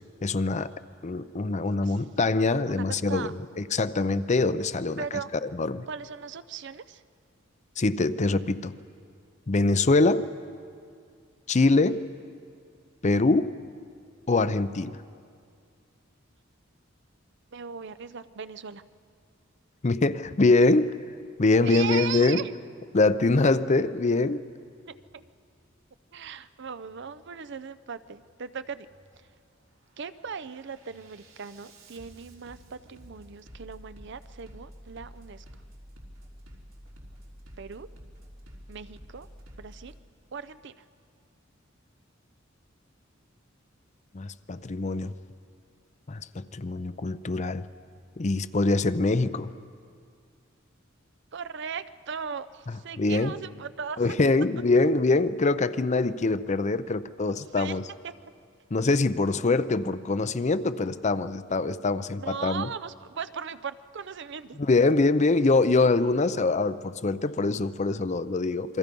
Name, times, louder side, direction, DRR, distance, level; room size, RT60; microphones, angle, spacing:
voice 1, 0.2-0.7 1.0-5.0 5.4-5.9 7.8-8.7 9.5-10.3 11.5-12.0 13.0-13.5 14.3-15.0 19.8-20.9 21.4-22.4 22.9-24.4 44.1-45.1 46.1-47.7 48.2-49.5 53.0-53.3 54.0-57.8 58.7-62.7 64.6-68.8, left 3 dB, 35° left, 13 dB, 0.6 m, -24 dB
voice 2, 2.7-3.3 5.0-5.3 5.9-7.0 17.5-18.8 21.5-22.5 24.9-25.2 26.1-28.9 30.0-35.4 37.6-37.9 38.7-39.3 39.6-39.9 40.3-40.8 51.3-54.0 57.5-57.8 58.0-58.1 62.1-64.6, right 6 dB, 60° right, 13 dB, 0.6 m, -38 dB
Bass drum, 24.9-25.3 26.1-26.4 26.9-27.3 28.1-28.4 28.9-29.4 29.8-40.0, equal, 90° right, 3.5 m, -50 dB
28.0 x 22.5 x 5.3 m, 2.3 s
head